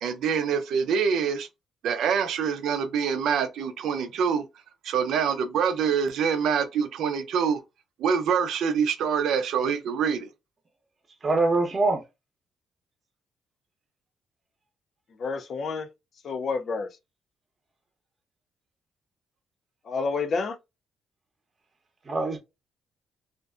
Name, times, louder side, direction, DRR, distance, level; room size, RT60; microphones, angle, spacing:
voice 1, 0.0-1.5 1.8-4.4 4.8-7.6 8.0-10.3, right 7 dB, 75° right, 0.5 m, -25 dB
voice 2, 11.2-12.0 22.1-22.4, right 2 dB, 35° right, 0.8 m, -23 dB
voice 3, 15.2-15.9 16.2-16.9 19.9-20.6, left 4 dB, 55° left, 0.5 m, -29 dB
2.5 x 2.2 x 2.4 m
cardioid pair, 90°, 0 cm